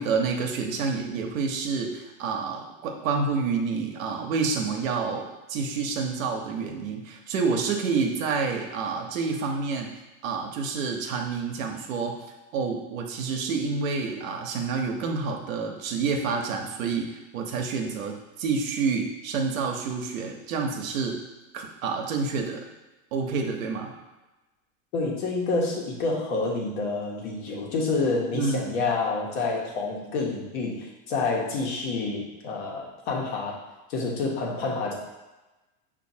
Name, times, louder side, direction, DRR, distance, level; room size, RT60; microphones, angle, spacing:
voice 1, 0.0-9.9 10.2-12.2 12.5-21.2 21.5-22.6 23.1-23.9 28.3-28.9, right 4 dB, 85° right, 2 dB, 0.9 m, -28 dB
voice 2, 24.9-33.6 33.9-34.9, left 3 dB, 55° left, -1 dB, 1.1 m, -28 dB
5.9 x 2.7 x 2.7 m, 1.1 s
supercardioid pair, 140°, 39 cm